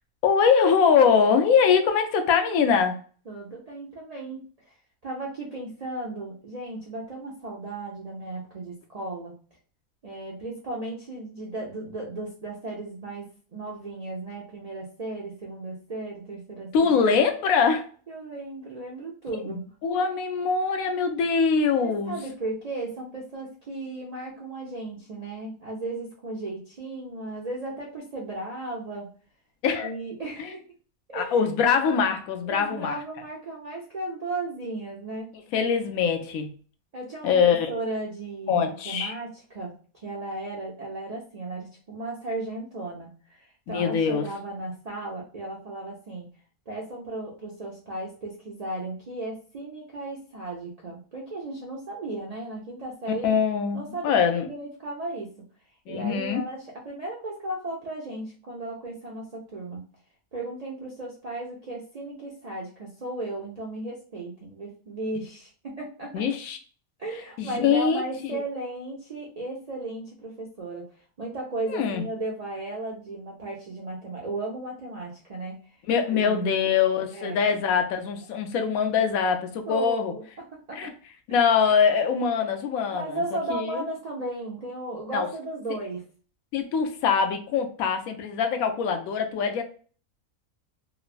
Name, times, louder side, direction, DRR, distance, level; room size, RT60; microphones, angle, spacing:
voice 1, 0.2-3.0 16.7-17.8 19.5-22.2 29.6-30.0 30.4-30.5 31.1-33.0 35.5-36.5 37.2-37.8 38.5-39.1 43.7-44.3 53.2-54.5 55.9-56.4 66.1-66.6 67.4-68.4 71.7-72.0 75.9-80.1 80.7-80.9 81.3-83.2 83.5-83.9 85.1-85.3 86.5-89.6, left 6 dB, 75° left, 6 dB, 1.0 m, -23 dB
voice 2, 3.3-4.4 5.0-9.3 10.0-17.1 18.1-19.6 21.8-29.1 29.8-30.6 31.1-31.4 32.5-35.3 36.9-39.7 40.0-46.3 46.7-53.3 53.7-55.3 55.9-59.8 60.3-66.2 67.0-70.9 71.2-75.6 76.1-76.5 77.1-77.4 79.6-80.2 80.5-80.9 81.3-81.4 82.9-86.0, right 2 dB, 85° right, -2 dB, 0.3 m, -35 dB
3.0 x 2.1 x 2.4 m, 0.41 s
omnidirectional pair, 1.5 m